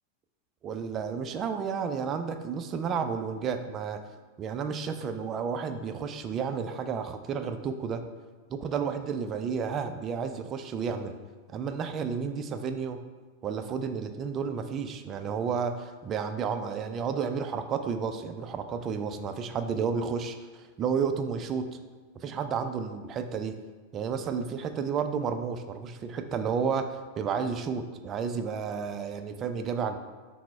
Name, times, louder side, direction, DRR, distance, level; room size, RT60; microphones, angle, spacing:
voice 1, 0.6-4.0 4.4-8.0 8.5-11.1 11.5-13.0 13.4-21.7 22.1-23.5 23.9-30.0, right 6 dB, 30° right, 7 dB, 0.3 m, -31 dB
5.8 x 2.1 x 4.5 m, 1.4 s
figure-of-eight pair, 90°, 0 cm